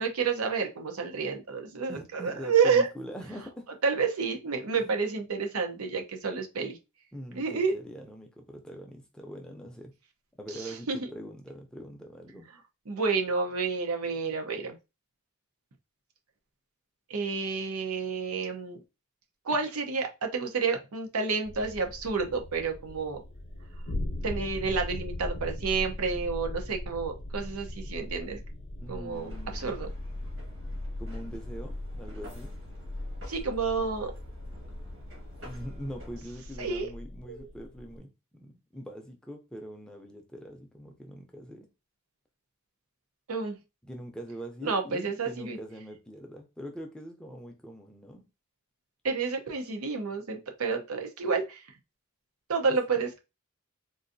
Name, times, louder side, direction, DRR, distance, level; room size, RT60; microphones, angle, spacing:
voice 1, 0.0-2.9 3.8-6.8 7.4-7.8 10.6-11.0 12.9-14.8 17.1-18.8 19.4-23.2 24.2-28.4 28.9-29.9 33.3-34.1 36.6-36.9 37.3-37.5 43.3-43.6 44.6-45.6 49.0-51.6 52.5-53.2, right 5 dB, 85° right, 0.7 m, -29 dB
voice 2, 1.9-3.7 4.7-4.9 7.1-9.9 10.4-12.5 28.8-29.8 31.0-32.5 35.4-38.1 38.4-41.7 43.8-48.2 52.7-52.8, equal, 5° left, 0.5 m, -43 dB
sound 1, 21.4-38.0, left 1 dB, 60° left, 0.7 m, -39 dB
sound 2, 29.1-36.2, left 1 dB, 60° right, 1.5 m, -48 dB
3.8 x 2.5 x 2.6 m
head